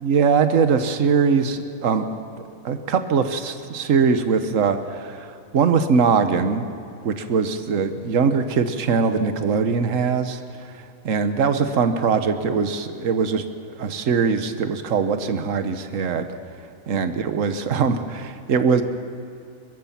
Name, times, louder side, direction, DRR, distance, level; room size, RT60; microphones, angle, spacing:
voice 1, 0.0-2.1 2.6-6.7 7.0-10.7 11.0-13.4 13.8-16.3 16.9-18.8, right 5 dB, 65° right, 9 dB, 1.4 m, -21 dB
23.0 x 21.5 x 5.9 m, 2.5 s
omnidirectional pair, 1.5 m